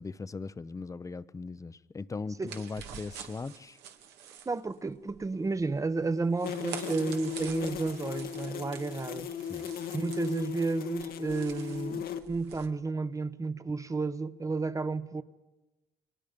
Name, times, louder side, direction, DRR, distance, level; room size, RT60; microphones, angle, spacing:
voice 1, 0.0-3.8 9.5-9.7, left 4 dB, 20° left, 0.7 m, -39 dB
sound 1, 2.5-12.7, right 8 dB, 85° right, 1.9 m, -47 dB
voice 2, 4.5-9.3 9.9-15.2, right 3 dB, 20° right, 0.9 m, -32 dB
sound 2, 6.4-12.2, left 9 dB, 60° left, 1.2 m, -37 dB
29.5 x 24.0 x 5.2 m
cardioid pair, 110°, 17 cm